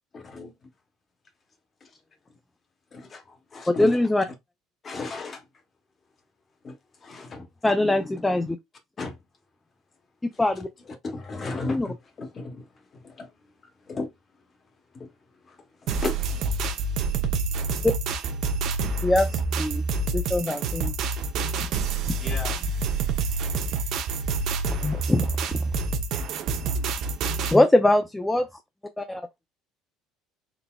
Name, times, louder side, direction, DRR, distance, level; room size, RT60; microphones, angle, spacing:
voice 1, 0.1-0.7 1.8-1.9 2.9-4.0 4.8-5.4 6.6-7.5 9.0-9.2 10.5-13.3 13.8-14.1 14.9-15.1 15.4-16.4 22.2-22.6, left 3 dB, 25° left, 0.9 m, -36 dB
voice 2, 3.8-4.2 7.6-8.6 10.4-10.7 11.7-11.9 17.8-17.9 19.0-19.8 20.1-20.9 22.1-22.2 24.8-25.6 27.5-28.5 29.0-29.2, left 1 dB, 10° left, 0.4 m, -22 dB
sound 1, 15.9-27.6, right 4 dB, 50° right, 0.7 m, -27 dB
4.0 x 3.4 x 2.2 m
cardioid pair, 150°, 0 cm